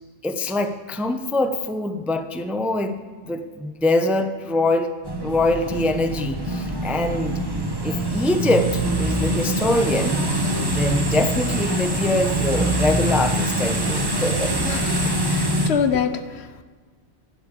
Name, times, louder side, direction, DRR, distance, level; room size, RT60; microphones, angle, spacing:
voice 1, 0.2-4.9 5.2-7.4 7.8-10.3 10.6-14.8, left 1 dB, ahead, 8 dB, 0.4 m, -24 dB
sound 1, 5.0-15.7, right 1 dB, 20° right, 1.0 m, -24 dB
voice 2, 14.7-16.6, left 7 dB, 70° left, 10 dB, 1.0 m, -26 dB
12.5 x 6.7 x 8.6 m, 1.4 s
omnidirectional pair, 1.2 m